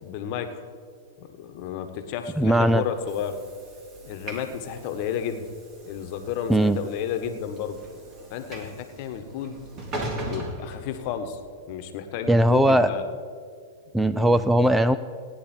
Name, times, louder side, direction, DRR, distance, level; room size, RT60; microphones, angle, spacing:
voice 1, 0.0-0.6 1.2-3.4 4.0-5.5 5.8-7.8 8.3-9.6 10.3-11.4 11.7-13.0 14.2-14.4, left 8 dB, 50° left, 8 dB, 1.3 m, -32 dB
Train / Sliding door, 2.2-11.5, right 1 dB, 30° right, 2.4 m, -40 dB
voice 2, 2.4-2.8 6.5-6.8 12.3-12.9 13.9-15.0, right 1 dB, 5° right, 12 dB, 0.4 m, -19 dB
17.0 x 10.0 x 4.4 m, 2.1 s
hypercardioid pair, 120°, 0 cm